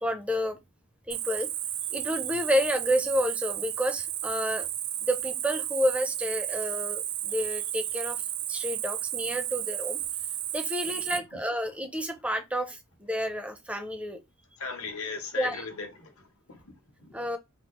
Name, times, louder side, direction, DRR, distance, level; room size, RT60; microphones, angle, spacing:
voice 1, 0.0-0.6 1.1-1.5 1.9-4.7 5.0-8.2 8.5-10.0 10.5-14.2 15.3-15.7 17.1-17.4, equal, 5° right, 0.5 m, -30 dB
Cricket, 1.1-11.2, right 11 dB, 80° right, 0.4 m, -33 dB
voice 2, 14.6-16.1 16.5-17.1, left 4 dB, 75° left, 0.8 m, -37 dB
3.4 x 2.3 x 3.0 m
head